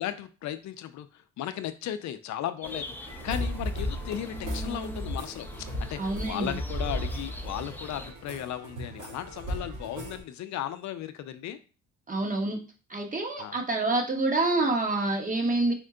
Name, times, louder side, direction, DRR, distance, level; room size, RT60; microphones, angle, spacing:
voice 1, 0.0-11.6 13.4-13.6, left 11 dB, 65° left, 10 dB, 0.5 m, -36 dB
sound 1, 2.6-8.1, left 1 dB, 5° left, 0.6 m, -42 dB
sound 2, 3.1-10.2, equal, 70° right, 1.8 m, -35 dB
voice 2, 6.0-6.5 12.1-12.6 12.9-15.7, right 2 dB, 25° right, 2 dB, 1.0 m, -27 dB
4.4 x 2.2 x 3.7 m, 0.34 s
cardioid pair, 90°, 30 cm